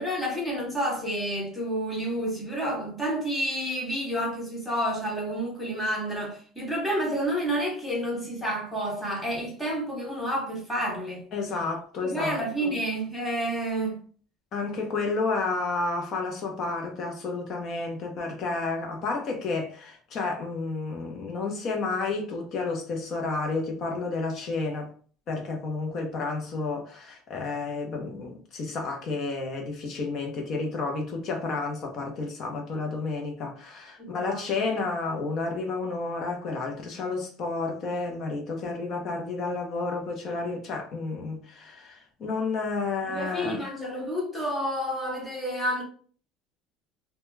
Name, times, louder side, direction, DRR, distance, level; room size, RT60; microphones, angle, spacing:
voice 1, 0.0-11.3 12.0-14.0 34.0-34.4 43.0-45.8, equal, 5° left, 0.8 m, -29 dB
voice 2, 11.3-12.7 14.5-24.9 25.3-43.6, left 3 dB, 40° left, 0.7 m, -31 dB
2.2 x 2.1 x 3.1 m
cardioid pair, 165°, 0 cm